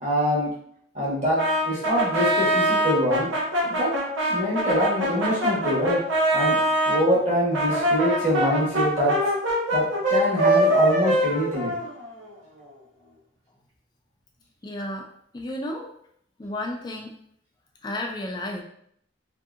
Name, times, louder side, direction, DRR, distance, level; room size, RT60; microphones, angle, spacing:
voice 1, 0.0-0.5 0.9-3.3 3.6-4.0 4.3-6.1 6.3-6.6 6.9-9.2 9.7-11.7, equal, 35° right, -7 dB, 1.2 m, -24 dB
Brass instrument, 1.4-7.0 7.5-12.3, right 1 dB, 85° right, 0.9 m, -23 dB
voice 2, 14.6-15.1 15.3-15.9 16.4-17.1 17.8-18.6, left 1 dB, 20° left, 1 dB, 0.4 m, -32 dB
2.7 x 2.6 x 2.4 m, 0.67 s
head